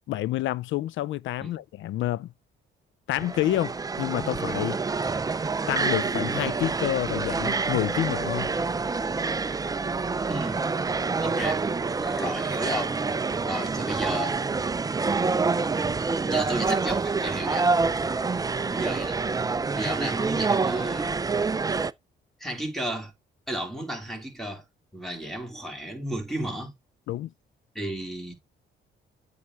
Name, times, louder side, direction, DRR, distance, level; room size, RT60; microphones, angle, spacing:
voice 1, 0.1-2.3 3.1-4.8 5.7-8.5 27.1-27.3, left 14 dB, 75° left, 0.5 m, -28 dB
sound 1, 3.1-21.9, right 4 dB, 20° right, 0.5 m, -27 dB
voice 2, 10.3-10.7 11.2-11.6 12.0-13.0 13.4-14.4 15.8-15.9 16.2-17.7 18.7-19.2 19.7-21.2 22.4-23.1 23.5-24.6 24.9-26.7 27.8-28.3, right 1 dB, ahead, 3.7 m, -33 dB
8.6 x 3.4 x 6.1 m
cardioid pair, 90°, 20 cm